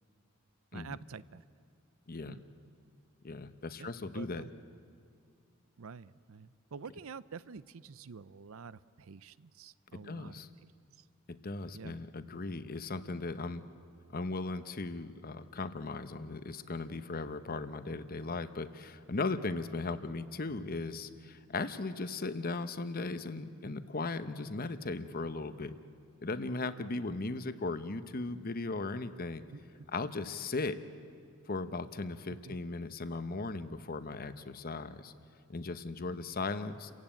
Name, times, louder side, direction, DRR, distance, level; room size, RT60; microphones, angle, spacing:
voice 1, 0.7-1.4 2.2-2.4 3.8-4.5 5.8-10.3 10.9-11.1 11.7-12.0 29.5-29.9 32.4-32.6, right 5 dB, 75° right, 17 dB, 0.6 m, -48 dB
voice 2, 2.1-2.4 3.2-4.4 10.0-10.5 11.3-13.7 14.1-25.8 26.2-29.4 29.9-30.8 31.5-35.1 35.5-36.9, left 3 dB, 45° left, 11 dB, 0.9 m, -37 dB
29.5 x 16.0 x 9.0 m, 2.3 s
head